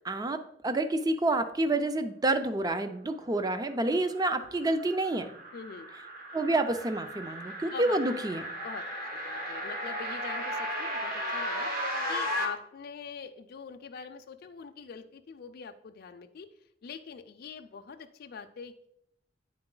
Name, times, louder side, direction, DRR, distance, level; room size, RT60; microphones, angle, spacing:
voice 1, 0.1-5.3 6.3-8.5, right 2 dB, 20° right, 9 dB, 0.4 m, -28 dB
sound 1, 4.1-12.5, equal, 50° right, 1.2 m, -35 dB
voice 2, 5.5-5.9 7.7-8.0 8.6-8.9 9.2-11.7 12.1-16.5 16.8-18.9, left 6 dB, 55° left, 6 dB, 0.4 m, -43 dB
8.7 x 3.9 x 3.8 m, 0.73 s
head